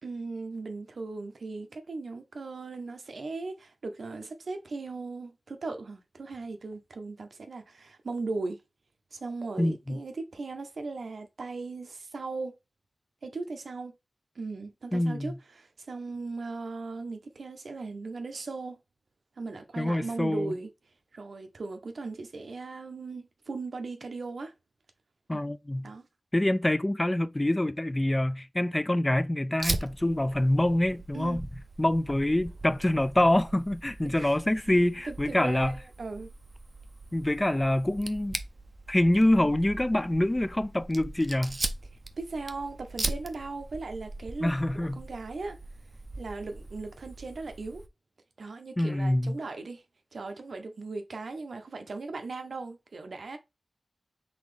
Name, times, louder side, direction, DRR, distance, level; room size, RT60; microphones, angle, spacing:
voice 1, 0.0-8.6 9.1-12.5 13.2-13.9 14.4-18.8 19.4-20.7 21.1-24.5 25.3-25.4 25.8-26.1 31.1-31.4 34.2-34.4 35.1-36.3 42.2-45.6 46.2-47.8 48.4-49.8 50.1-53.4, right 3 dB, 75° right, 0.7 m, -38 dB
voice 2, 9.6-10.0 14.9-15.4 19.8-20.5 25.3-25.9 26.3-31.4 31.8-35.8 37.1-38.4 38.9-41.6 44.4-45.0 48.8-49.4, left 1 dB, 20° left, 0.3 m, -26 dB
Fire, 29.6-47.9, right 2 dB, 40° right, 0.5 m, -40 dB
4.0 x 3.5 x 3.2 m
wide cardioid pair, 75°, 0 cm